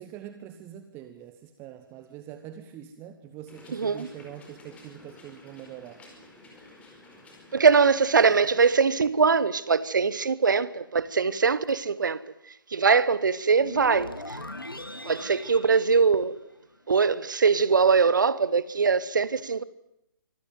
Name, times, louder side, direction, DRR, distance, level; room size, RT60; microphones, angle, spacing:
voice 1, 0.0-6.0, right 10 dB, 20° right, 1.2 m, -44 dB
sound 1, 3.5-8.8, left 2 dB, 10° left, 4.8 m, -52 dB
voice 2, 3.7-4.1 7.5-12.2 12.7-14.4 15.0-16.4 16.9-19.6, right 5 dB, 60° right, 1.1 m, -22 dB
sound 2, 13.6-16.8, left 1 dB, 80° left, 2.0 m, -40 dB
25.0 x 14.5 x 9.4 m
figure-of-eight pair, 130°, 12 cm